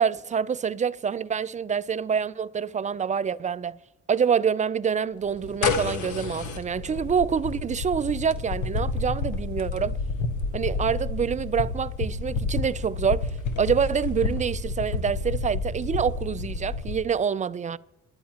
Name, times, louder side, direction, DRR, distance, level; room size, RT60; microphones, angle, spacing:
voice 1, 0.0-3.8 4.1-10.0 10.5-13.3 13.6-17.8, right 7 dB, 25° right, 0.4 m, -26 dB
sound 1, 5.3-17.0, left 4 dB, 75° left, 1.3 m, -30 dB
27.5 x 11.5 x 2.9 m
cardioid pair, 90°, 30 cm